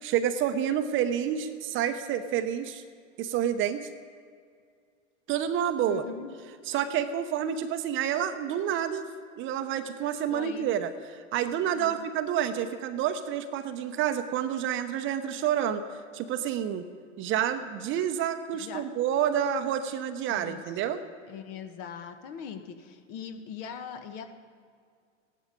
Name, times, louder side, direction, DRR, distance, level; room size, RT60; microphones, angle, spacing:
voice 1, 0.0-2.8 3.2-3.9 5.3-6.0 6.7-9.1 9.4-10.9 11.3-15.8 16.1-16.9 17.2-21.0, right 9 dB, 35° right, 9 dB, 0.8 m, -29 dB
voice 2, 5.8-6.3 10.3-10.7 11.7-12.0 18.5-18.8 20.3-20.6 21.3-24.3, left 7 dB, 50° left, 8 dB, 1.2 m, -41 dB
15.0 x 11.0 x 5.2 m, 2.2 s
hypercardioid pair, 105°, 37 cm